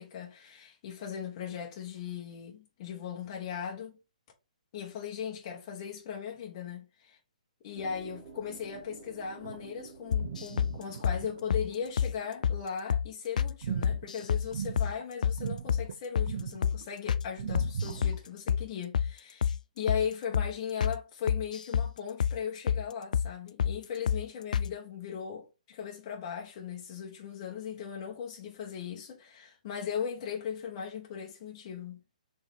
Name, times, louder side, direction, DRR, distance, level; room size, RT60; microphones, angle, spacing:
voice 1, 0.0-4.0 4.7-7.2 7.6-32.0, left 7 dB, 30° left, 0.8 m, -38 dB
sound 1, 7.7-12.7, right 5 dB, 15° right, 2.3 m, -51 dB
sound 2, 9.4-9.9 10.2-11.9 13.6-15.0 15.4-16.0 16.3-16.9 17.4-18.3, right 7 dB, 55° right, 0.4 m, -38 dB
sound 3, 10.1-10.7 11.0-11.2 11.5-11.7 12.0-12.1 12.4-12.6 12.9-13.1 13.4-13.5 13.8-14.5 14.8-14.9 15.2-15.4 15.7-15.8 16.1-16.3 16.6-16.8 17.1-17.2 17.5-18.2 18.5-18.6 18.9-19.1 19.4-19.6 19.9-20.0 20.3-20.5 20.8-21.0 21.3-21.9 22.2-22.4 22.7-22.8 23.1-23.3 23.6-23.8 24.1-24.2 24.5-24.7, left 8 dB, 70° left, 0.3 m, -27 dB
4.6 x 3.2 x 3.0 m
hypercardioid pair, 165°, 4 cm